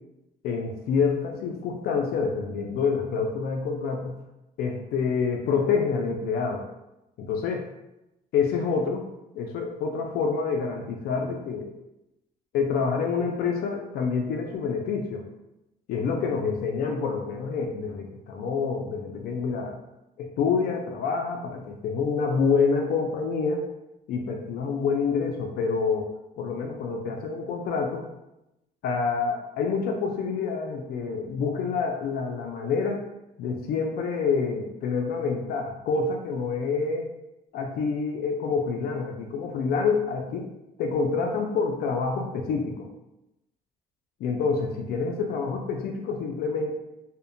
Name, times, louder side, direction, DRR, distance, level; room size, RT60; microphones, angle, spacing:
voice 1, 0.4-4.2 4.6-6.6 7.2-7.7 8.3-9.0 9.4-11.7 12.5-15.3 15.9-19.8 20.2-23.6 24.1-28.0 28.8-33.0 33.4-37.1 37.5-40.5 40.8-42.9 44.2-46.7, left 5 dB, 65° left, 3 dB, 0.4 m, -27 dB
2.6 x 2.1 x 2.5 m, 0.91 s
cardioid pair, 110°, 17 cm